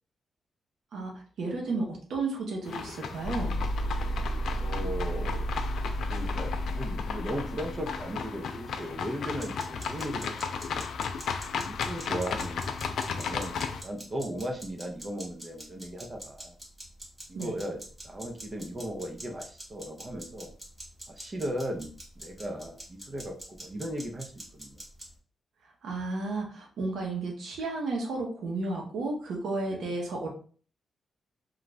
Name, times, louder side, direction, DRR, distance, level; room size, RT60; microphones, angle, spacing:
voice 1, 0.9-3.5 17.3-17.5 25.8-30.3, right 3 dB, 85° right, 0 dB, 0.9 m, -33 dB
sound 1, 2.7-13.8, left 6 dB, 80° left, 0.3 m, -35 dB
sound 2, 3.2-8.1, equal, 45° left, 0.7 m, -32 dB
voice 2, 4.5-5.5 6.1-10.8 11.6-12.7 13.1-16.6 17.3-20.5 21.1-24.8 29.7-30.0, equal, 30° right, 2 dB, 0.6 m, -37 dB
sound 3, 9.4-25.2, equal, 10° right, 1.0 m, -46 dB
2.5 x 2.3 x 3.1 m, 0.42 s
cardioid pair, 115°, 0 cm